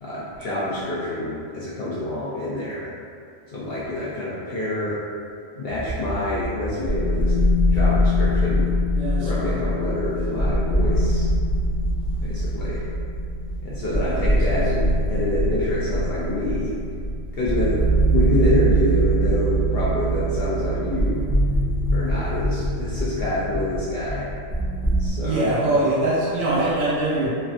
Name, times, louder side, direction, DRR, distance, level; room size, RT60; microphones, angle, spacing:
voice 1, 0.0-2.9 3.5-5.0 5.5-7.3 7.7-8.7 9.2-11.3 12.2-12.9 13.6-16.7 17.3-17.9 18.1-21.2 21.9-24.3 25.0-25.7, left 2 dB, 65° left, -8 dB, 0.6 m, -27 dB
sound 1, 5.7-25.1, right 1 dB, 5° left, 0.3 m, -23 dB
voice 2, 8.9-9.5 13.9-14.6 25.2-27.3, right 2 dB, 80° right, -7 dB, 1.2 m, -23 dB
3.1 x 2.4 x 2.5 m, 2.3 s
omnidirectional pair, 1.4 m